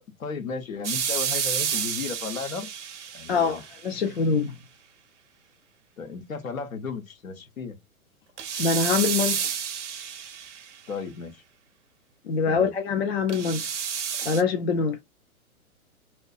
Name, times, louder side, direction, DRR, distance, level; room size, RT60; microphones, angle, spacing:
voice 1, 0.0-2.7 3.1-3.6 6.0-7.8 10.9-11.4 12.5-12.7, left 5 dB, 65° left, 0.8 m, -34 dB
sound 1, 0.8-3.9 8.4-10.9 13.3-14.4, right 8 dB, 55° right, 0.6 m, -30 dB
voice 2, 3.3-4.5 8.6-9.4 12.3-13.7 14.2-15.0, left 5 dB, 45° left, 0.5 m, -24 dB
2.6 x 2.2 x 2.3 m
figure-of-eight pair, 115°, 44 cm